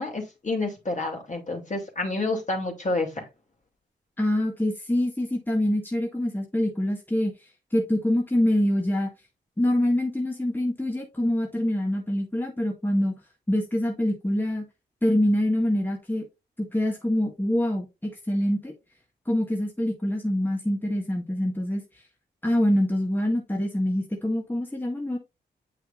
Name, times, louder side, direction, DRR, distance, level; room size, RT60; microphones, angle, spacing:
voice 1, 0.0-3.2, left 2 dB, 40° left, 3.0 m, -29 dB
voice 2, 4.2-7.3 7.7-9.1 9.6-13.2 13.5-14.7 15.0-16.3 16.6-18.7 19.3-22.0 22.4-25.2, left 1 dB, 10° left, 1.7 m, -25 dB
8.1 x 5.6 x 2.6 m
supercardioid pair, 45°, 19 cm